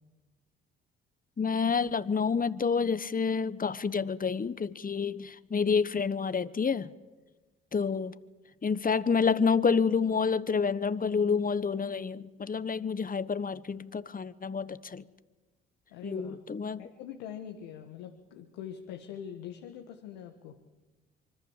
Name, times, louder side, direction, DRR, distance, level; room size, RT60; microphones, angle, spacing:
voice 1, 1.4-6.9 7.7-8.1 8.6-15.0 16.0-16.8, left 5 dB, 30° left, 16 dB, 1.2 m, -28 dB
voice 2, 15.9-16.4 16.8-20.6, left 9 dB, 85° left, 5 dB, 1.6 m, -43 dB
25.5 x 24.5 x 7.4 m, 1.2 s
hypercardioid pair, 50°, 29 cm